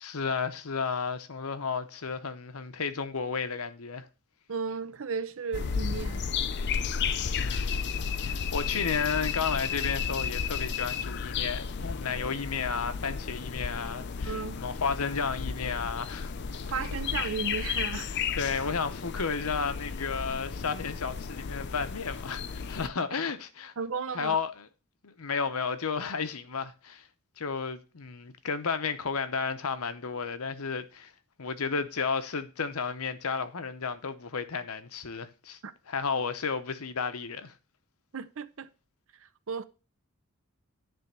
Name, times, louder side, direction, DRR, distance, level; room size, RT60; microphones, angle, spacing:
voice 1, 0.0-4.1 7.4-7.9 8.2-16.3 18.0-23.7 24.1-24.7 25.0-27.1 27.4-31.1 31.4-35.6 35.9-37.5, left 5 dB, 75° left, 0.9 m, -32 dB
voice 2, 4.5-6.3 14.2-14.6 16.6-18.1 23.8-24.4 35.6-35.7 38.1-38.7 39.2-39.6, right 5 dB, 60° right, 0.6 m, -34 dB
sound 1, 5.5-22.9, left 6 dB, 50° left, 0.5 m, -33 dB
10.5 x 3.5 x 6.8 m
head